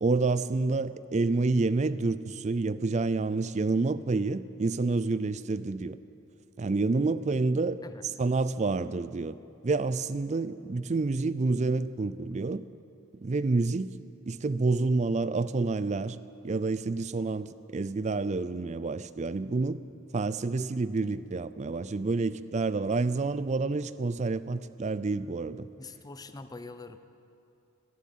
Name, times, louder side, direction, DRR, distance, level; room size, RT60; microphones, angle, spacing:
voice 1, 0.0-6.0 6.6-7.8 8.2-9.4 9.6-12.6 13.2-13.9 14.3-16.2 16.4-19.8 20.1-25.7, right 3 dB, 30° right, 15 dB, 0.4 m, -28 dB
voice 2, 25.8-27.0, left 3 dB, 15° left, 10 dB, 0.6 m, -44 dB
13.0 x 11.5 x 9.3 m, 2.7 s
head